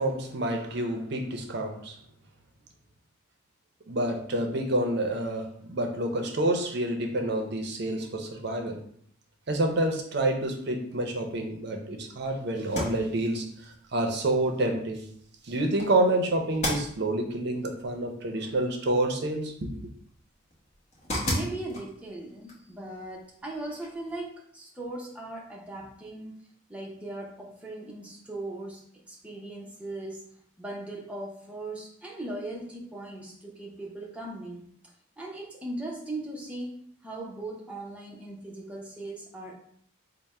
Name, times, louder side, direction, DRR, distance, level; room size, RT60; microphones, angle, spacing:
voice 1, 0.0-2.0 3.9-8.8 9.5-15.0 15.4-19.7, right 1 dB, 55° right, 3 dB, 0.6 m, -28 dB
sound 1, 12.6-24.2, left 1 dB, 35° left, 0.9 m, -38 dB
voice 2, 21.3-26.3 26.7-28.8 29.1-30.2 30.6-34.6 35.2-39.5, right 2 dB, 5° right, -3 dB, 0.6 m, -38 dB
3.4 x 2.1 x 4.1 m, 0.65 s
head